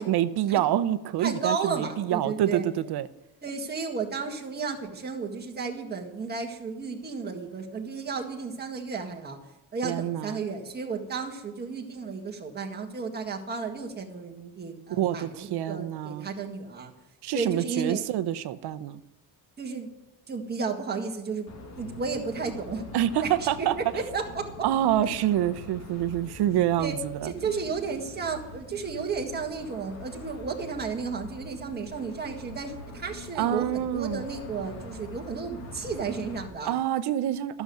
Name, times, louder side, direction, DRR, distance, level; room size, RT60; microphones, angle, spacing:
voice 1, 0.0-3.1 9.8-10.4 14.9-16.3 17.2-19.0 22.9-23.7 24.6-27.5 33.3-34.2 36.6-37.6, right 11 dB, 70° right, 13 dB, 0.8 m, -27 dB
voice 2, 1.2-2.6 3.4-9.4 9.7-16.9 17.3-18.0 19.6-19.9 20.3-21.5 21.8-22.9 23.2-24.5 26.8-26.9 27.2-36.8, right 5 dB, 25° right, 1 dB, 1.8 m, -33 dB
sound 1, 21.5-36.5, left 1 dB, 40° left, 2.0 m, -44 dB
13.0 x 7.1 x 9.3 m, 0.92 s
cardioid pair, 175°, 40 cm